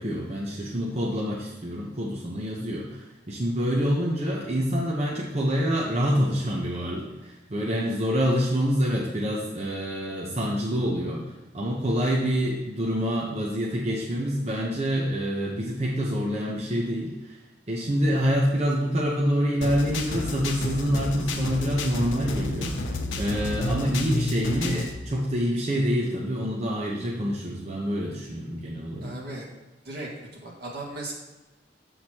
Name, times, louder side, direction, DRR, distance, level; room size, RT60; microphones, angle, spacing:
voice 1, 0.0-11.2 11.5-17.4 17.7-29.2, equal, 35° right, -3 dB, 0.8 m, -26 dB
sound 1, 19.6-25.0, left 2 dB, 90° left, 0.8 m, -30 dB
voice 2, 29.0-29.5 29.8-30.1 30.4-31.1, right 2 dB, 55° right, -3 dB, 1.9 m, -36 dB
7.1 x 6.3 x 2.9 m, 1.1 s
head